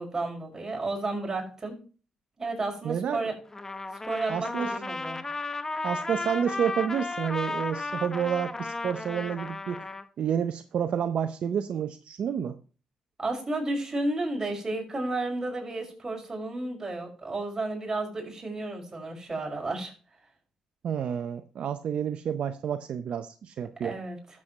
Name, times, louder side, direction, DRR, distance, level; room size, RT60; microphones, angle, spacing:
voice 1, 0.0-1.8 2.4-3.3 4.0-5.2 13.2-19.9 23.8-24.2, right 2 dB, 25° right, 0 dB, 5.7 m, -32 dB
voice 2, 2.8-3.3 4.3-4.8 5.8-9.8 10.2-12.6 20.8-24.0, right 8 dB, 65° right, 9 dB, 0.6 m, -29 dB
Trumpet, 3.5-10.1, left 3 dB, 25° left, 0.9 m, -34 dB
12.5 x 7.5 x 3.1 m, 0.37 s
cardioid pair, 65°, 2 cm